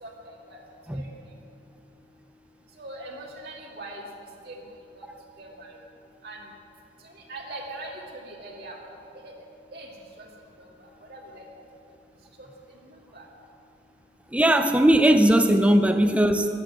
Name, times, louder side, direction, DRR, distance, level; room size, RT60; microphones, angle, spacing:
voice 1, 2.8-4.0 4.5-4.6 4.9-5.1 5.4-5.7 6.2-6.4 7.1-8.8 9.2-9.3 9.7-9.9 10.2-10.3 10.6-10.7 11.1-11.4 12.4-12.5 13.1-13.2, right 2 dB, 55° right, -2 dB, 1.9 m, -40 dB
voice 2, 14.3-16.5, right 1 dB, 5° right, 7 dB, 0.5 m, -19 dB
12.5 x 11.0 x 7.6 m, 2.7 s
head